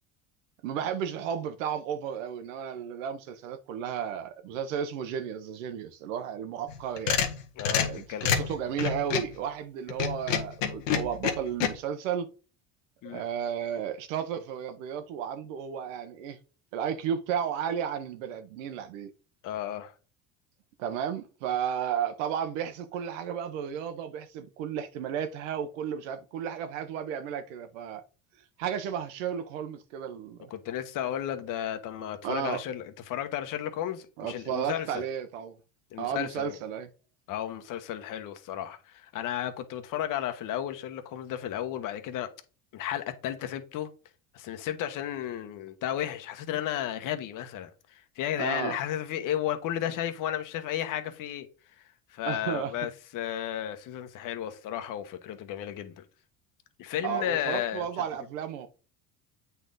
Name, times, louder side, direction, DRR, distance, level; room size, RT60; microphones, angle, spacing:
voice 1, 0.6-7.2 7.8-12.3 13.0-16.4 16.7-19.1 20.8-28.0 28.6-30.5 32.2-32.6 34.2-35.6 36.0-36.9 48.4-48.8 52.2-52.7 57.0-58.7, right 8 dB, 80° right, 1.2 m, -33 dB
sound 1, 6.7-9.4 9.9-11.7, left 7 dB, 90° left, 1.5 m, -27 dB
voice 2, 7.6-8.5 13.0-13.2 19.4-19.9 30.5-35.0 35.9-36.6 37.3-42.3 42.7-43.9 44.3-51.5 51.8-51.9 52.1-56.0 56.8-57.9, left 11 dB, 55° left, 1.3 m, -33 dB
8.1 x 4.3 x 3.9 m
hypercardioid pair, 85°, 37 cm